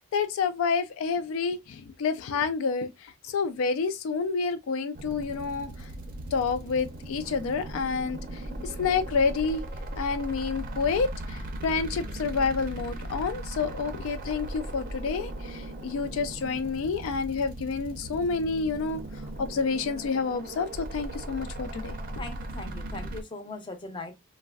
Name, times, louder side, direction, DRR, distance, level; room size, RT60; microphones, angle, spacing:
voice 1, 0.0-5.9 6.3-9.6 10.0-19.0 19.4-22.0, left 5 dB, 75° left, 0.3 m, -29 dB
sound 1, 4.9-23.2, right 1 dB, 40° right, 0.5 m, -38 dB
voice 2, 22.2-24.1, left 2 dB, 25° left, 0.5 m, -39 dB
3.2 x 2.1 x 2.3 m
head